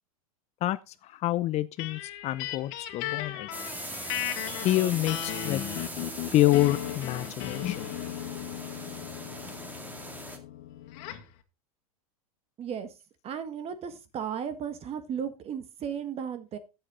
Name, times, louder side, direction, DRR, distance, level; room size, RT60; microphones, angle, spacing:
voice 1, 1.0-3.5 4.6-5.6 6.3-7.9, left 15 dB, 35° left, 0.6 m, -27 dB
sound 1, 1.8-11.3, left 12 dB, 55° left, 1.9 m, -37 dB
sound 2, 3.5-10.4, right 1 dB, 10° right, 2.0 m, -40 dB
voice 2, 12.6-12.9 13.2-16.6, right 8 dB, 35° right, 1.7 m, -35 dB
12.5 x 7.8 x 3.8 m
hypercardioid pair, 115°, 19 cm